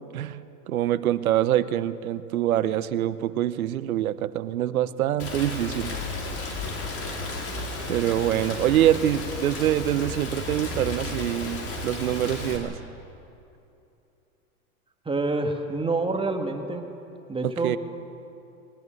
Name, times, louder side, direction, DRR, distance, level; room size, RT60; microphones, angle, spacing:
voice 1, 0.0-6.0 7.9-12.8 17.4-17.8, right 12 dB, 75° right, 15 dB, 1.0 m, -25 dB
Rain, 5.2-12.6, left 2 dB, 30° left, 4.9 m, -33 dB
voice 2, 15.1-16.9 17.3-17.8, right 3 dB, 10° right, 4 dB, 1.9 m, -27 dB
21.5 x 20.0 x 7.8 m, 2.7 s
hypercardioid pair, 100°, 43 cm